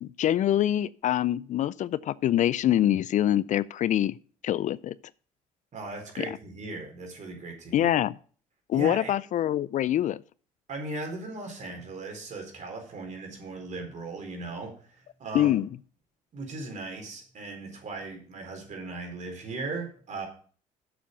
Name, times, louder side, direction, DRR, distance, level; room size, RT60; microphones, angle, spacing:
voice 1, 0.0-4.2 4.4-4.9 6.2-6.3 7.7-8.1 8.7-10.2 15.3-15.7, left 12 dB, 50° left, 0.4 m, -25 dB
voice 2, 5.7-7.9 8.7-9.1 10.7-15.6 16.3-20.3, right 3 dB, 50° right, 4.2 m, -38 dB
7.6 x 7.0 x 6.7 m
supercardioid pair, 65°, 16 cm